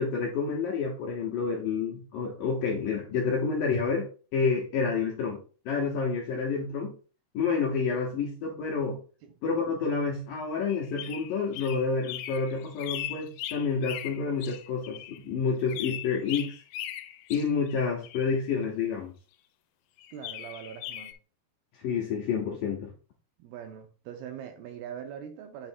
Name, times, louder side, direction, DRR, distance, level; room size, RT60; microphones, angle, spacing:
voice 1, 0.0-7.0 7.3-9.0 9.4-16.5 17.3-19.1 21.8-22.9, left 5 dB, 75° left, 2.1 m, -29 dB
sound 1, 10.7-15.2 15.7-18.4 20.0-21.1, left 12 dB, 90° left, 2.8 m, -39 dB
voice 2, 20.1-21.2 23.4-25.7, right 8 dB, 80° right, 2.3 m, -42 dB
7.7 x 3.2 x 4.5 m
omnidirectional pair, 5.0 m